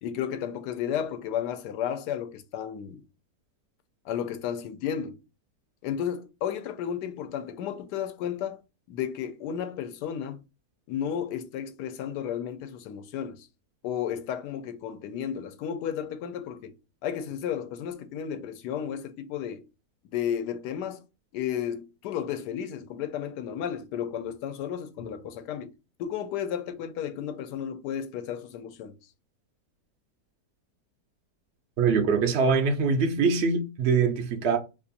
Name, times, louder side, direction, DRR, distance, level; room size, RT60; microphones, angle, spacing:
voice 1, 0.0-3.0 4.0-5.2 5.8-8.6 8.9-10.4 10.9-13.5 13.8-16.7 17.0-19.6 20.1-21.0 21.3-25.7 26.0-28.9, left 9 dB, 80° left, 1.2 m, -33 dB
voice 2, 31.8-34.6, right 5 dB, 65° right, 0.6 m, -23 dB
2.9 x 2.5 x 3.9 m
omnidirectional pair, 1.8 m